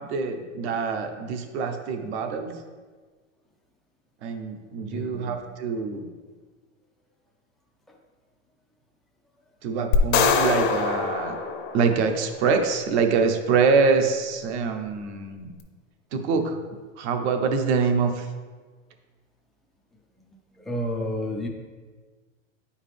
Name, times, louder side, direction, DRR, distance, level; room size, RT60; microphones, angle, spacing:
voice 1, 0.0-2.5 4.2-6.1 9.6-11.4 11.7-15.5 16.1-16.6 17.0-18.3, right 5 dB, 55° right, 5 dB, 1.0 m, -25 dB
voice 2, 4.9-5.3 20.2-20.3 20.7-21.5, left 1 dB, ahead, -1 dB, 0.4 m, -30 dB
sound 1, 9.9-12.3, left 5 dB, 55° left, 0.8 m, -24 dB
9.0 x 4.9 x 3.4 m, 1.4 s
supercardioid pair, 135°, 39 cm